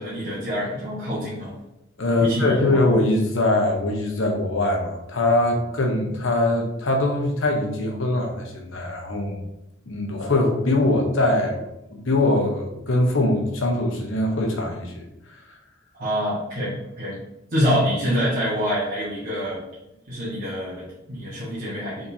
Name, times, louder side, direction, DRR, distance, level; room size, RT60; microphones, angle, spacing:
voice 1, 0.0-1.5 2.2-2.8 15.9-17.2 17.5-19.6 20.1-22.1, equal, 40° right, -8 dB, 1.2 m, -26 dB
voice 2, 2.0-9.4 9.9-11.6 11.9-15.4, left 2 dB, 70° left, 2 dB, 0.9 m, -22 dB
4.4 x 3.7 x 2.7 m, 0.91 s
head